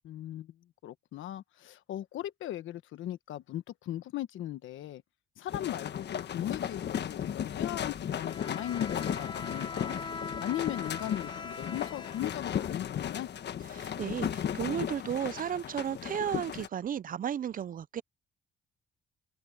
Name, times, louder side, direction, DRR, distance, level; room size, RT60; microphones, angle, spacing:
voice 1, 0.0-0.5 0.8-5.0 5.4-9.9 10.4-13.3, left 13 dB, 80° left, 1.2 m, -38 dB
sound 1, 5.5-16.7, left 9 dB, 60° left, 1.4 m, -36 dB
Bowed string instrument, 8.1-13.1, left 4 dB, 25° left, 0.7 m, -42 dB
voice 2, 13.7-18.0, right 9 dB, 45° right, 0.5 m, -34 dB
open air
cardioid pair, 90°, 20 cm